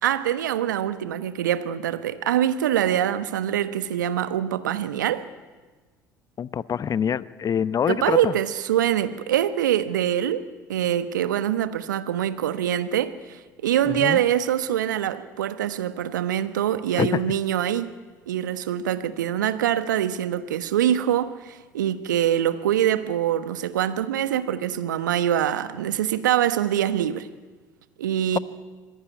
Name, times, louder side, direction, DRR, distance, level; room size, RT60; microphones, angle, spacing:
voice 1, 0.0-5.2 7.9-10.4 10.7-17.9 18.3-27.3 28.0-28.4, right 11 dB, 75° right, 1.2 m, -24 dB
voice 2, 6.4-8.3 13.9-14.2 17.0-17.2, left 8 dB, 35° left, 0.9 m, -25 dB
26.5 x 21.5 x 9.3 m
figure-of-eight pair, 60°, 10 cm